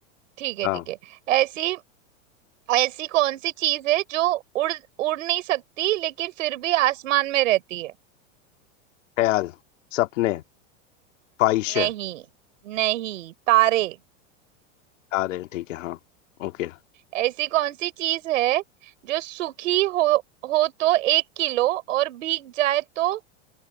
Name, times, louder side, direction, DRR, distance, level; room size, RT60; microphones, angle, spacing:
voice 1, 0.4-1.0 1.3-1.8 2.7-7.9 11.7-12.2 12.6-14.0 17.1-18.6 19.0-23.2, right 15 dB, 80° right, 3.7 m, -24 dB
voice 2, 9.2-9.5 9.9-10.4 11.4-11.9 15.1-16.0 16.4-16.7, left 16 dB, 75° left, 2.1 m, -24 dB
open air
supercardioid pair, 140°, 38 cm